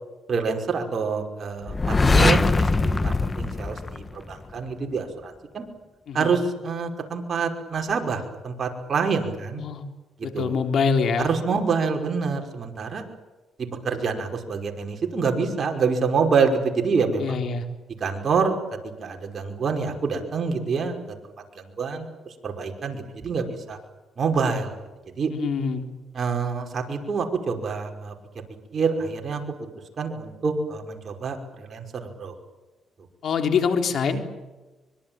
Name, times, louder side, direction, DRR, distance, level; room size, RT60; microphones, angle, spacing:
voice 1, 0.3-5.7 6.1-9.6 10.2-10.6 11.2-13.0 13.6-17.4 18.0-18.6 19.0-21.2 21.6-23.8 24.2-24.8 25.2-25.3 26.1-28.1 28.7-29.4 30.0-32.4, right 5 dB, 45° right, 3 dB, 5.4 m, -26 dB
sound 1, 1.7-4.5, left 3 dB, 25° left, 1.4 m, -21 dB
voice 2, 10.2-11.3 17.2-17.6 25.3-25.9 33.2-34.2, left 5 dB, 60° left, 6 dB, 3.8 m, -24 dB
24.5 x 23.0 x 9.0 m, 1.2 s
cardioid pair, 90°, 0 cm